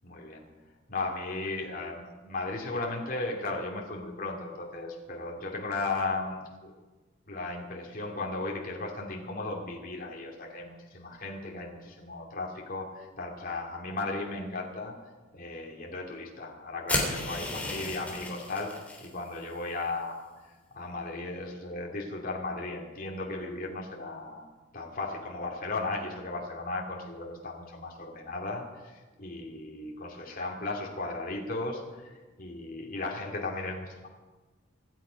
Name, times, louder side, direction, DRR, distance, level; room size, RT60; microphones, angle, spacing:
voice 1, 0.0-0.5 0.9-6.7 7.3-14.9 15.3-18.7 19.0-20.5 20.7-24.4 24.7-34.1, left 2 dB, 45° left, -1 dB, 2.6 m, -36 dB
sound 1, 16.9-19.1, left 2 dB, 5° left, 3.1 m, -33 dB
25.5 x 9.5 x 5.2 m, 1.3 s
head